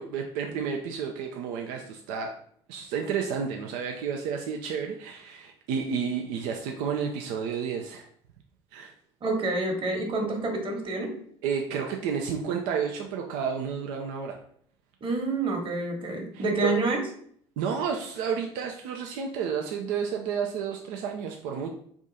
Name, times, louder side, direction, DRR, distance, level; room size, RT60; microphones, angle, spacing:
voice 1, 0.0-2.3 2.7-8.1 8.7-8.9 11.4-14.4 16.3-16.7 17.6-21.7, right 6 dB, 70° right, 2 dB, 0.5 m, -31 dB
voice 2, 9.2-11.2 15.0-17.0, right 2 dB, 40° right, 2 dB, 1.2 m, -28 dB
3.5 x 2.5 x 4.1 m, 0.62 s
hypercardioid pair, 65°, 14 cm